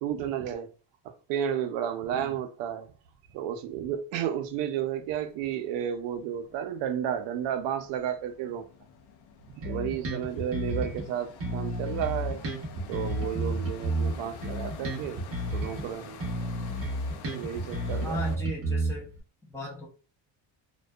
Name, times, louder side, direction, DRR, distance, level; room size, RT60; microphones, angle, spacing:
voice 1, 0.0-0.7 1.0-2.9 3.3-8.6 9.6-12.4 12.9-15.2 15.5-16.2 17.3-18.4, right 9 dB, 75° right, 0.5 m, -32 dB
sound 1, 4.1-4.2 4.5-18.4, left 7 dB, 80° left, 0.6 m, -48 dB
Bass guitar, 9.6-11.1 11.4-15.9 16.2-19.2, right 1 dB, 30° right, 0.6 m, -31 dB
voice 2, 18.0-19.1 19.5-19.9, equal, 5° left, 0.3 m, -35 dB
2.5 x 2.2 x 2.2 m
cardioid pair, 155°, 45 cm